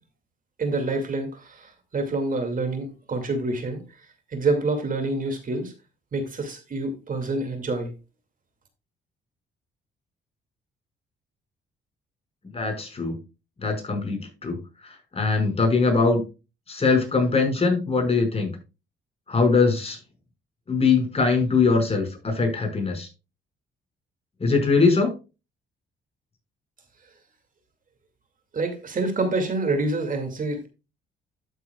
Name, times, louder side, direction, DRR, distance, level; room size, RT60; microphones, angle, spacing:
voice 1, 0.6-3.8 4.3-5.7 6.1-7.9 28.5-30.7, right 2 dB, 45° right, 6 dB, 2.3 m, -27 dB
voice 2, 12.5-13.2 13.6-14.6 14.8-16.2 16.7-18.5 19.3-20.0 20.7-23.1 24.4-25.1, left 4 dB, 30° left, 3 dB, 5.4 m, -22 dB
12.5 x 8.1 x 2.3 m, 0.29 s
cardioid pair, 90°, 20 cm